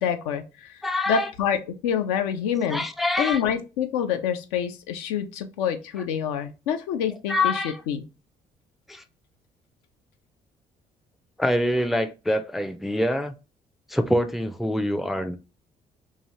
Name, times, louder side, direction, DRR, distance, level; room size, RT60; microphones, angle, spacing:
voice 1, 0.0-0.8 1.1-1.6 1.8-2.8 3.2-8.0, left 8 dB, 65° left, 0.4 m, -27 dB
voice 2, 0.8-1.3 2.7-3.4 7.3-7.8 8.9-9.0 11.4-13.3 13.9-15.4, left 1 dB, ahead, 0.3 m, -25 dB
2.8 x 2.3 x 2.7 m
figure-of-eight pair, 45°, 20 cm